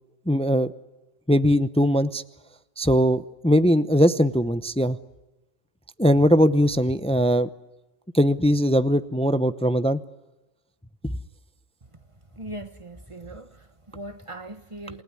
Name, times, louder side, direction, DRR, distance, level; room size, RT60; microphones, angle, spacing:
voice 1, 0.3-0.7 1.3-2.2 2.8-5.0 6.0-7.5 8.1-10.0 11.0-11.1, equal, 5° left, 0.7 m, -20 dB
voice 2, 12.3-15.0, right 1 dB, 30° right, 1.5 m, -40 dB
28.5 x 19.0 x 9.8 m
omnidirectional pair, 1.1 m